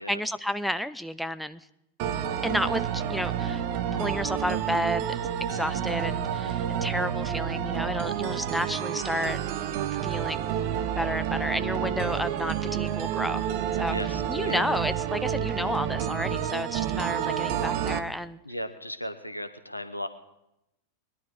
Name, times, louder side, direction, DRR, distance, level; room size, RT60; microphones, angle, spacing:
voice 1, 0.0-1.7 2.4-3.6 3.9-9.4 10.0-10.5 10.9-13.5 13.7-18.4, equal, ahead, 12 dB, 0.4 m, -31 dB
sound 1, 2.0-18.0, right 9 dB, 45° right, 0.8 m, -29 dB
voice 2, 13.8-14.6 18.4-20.1, left 1 dB, 85° left, 11 dB, 0.9 m, -36 dB
21.0 x 11.0 x 3.5 m, 0.85 s
figure-of-eight pair, 90°, 0 cm